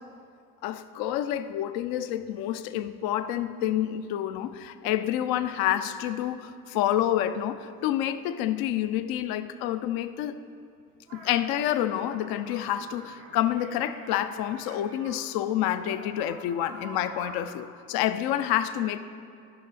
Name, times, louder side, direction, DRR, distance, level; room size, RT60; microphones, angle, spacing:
voice 1, 0.6-10.4 11.1-19.0, left 11 dB, 60° left, 11 dB, 0.5 m, -28 dB
sound 1, 11.1-15.2 15.7-17.5, right 2 dB, 75° right, 1.6 m, -46 dB
11.5 x 5.9 x 3.3 m, 2.4 s
figure-of-eight pair, 45°, 43 cm